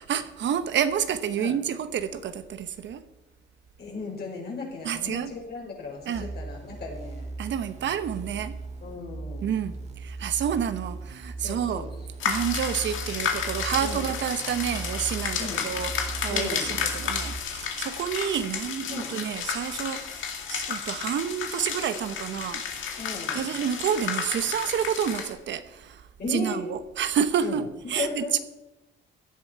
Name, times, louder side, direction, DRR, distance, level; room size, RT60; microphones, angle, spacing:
voice 1, 0.0-3.0 4.8-5.3 6.0-6.3 7.4-8.6 9.4-11.9 12.2-22.6 23.3-28.4, right 8 dB, 65° right, 1.0 m, -29 dB
voice 2, 3.8-7.3 8.8-9.7 11.4-11.9 13.8-14.1 15.4-15.7 16.3-16.8 18.9-19.1 23.0-23.5 26.2-26.6 27.4-27.6 27.9-28.4, left 3 dB, 55° left, 5.4 m, -36 dB
sound 1, 6.1-17.4, right 3 dB, 35° right, 1.6 m, -38 dB
sound 2, 12.2-25.3, left 7 dB, 80° left, 2.1 m, -32 dB
16.5 x 10.5 x 4.6 m
cardioid pair, 90°, 20 cm